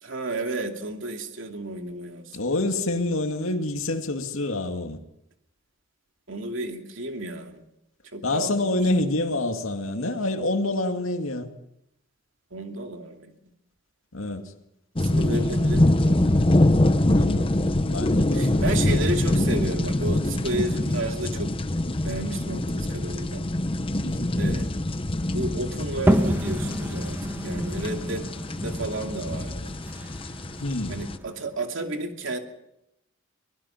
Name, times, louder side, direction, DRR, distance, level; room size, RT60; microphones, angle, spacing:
voice 1, 0.0-2.6 6.3-7.6 8.1-8.7 12.5-13.3 15.0-16.2 18.3-21.5 22.0-23.4 24.4-24.7 25.3-28.2 28.6-29.7 30.9-32.4, right 2 dB, 70° right, 2.7 m, -32 dB
voice 2, 2.3-5.0 8.2-11.5 14.1-14.5 17.1-17.5 17.9-18.6 20.3-20.5 24.0-24.3 30.6-31.0, left 2 dB, 85° left, 2.2 m, -27 dB
sound 1, 15.0-31.2, left 1 dB, 25° left, 0.8 m, -24 dB
sound 2, 26.1-31.5, equal, 10° right, 1.5 m, -28 dB
23.5 x 20.0 x 5.8 m
head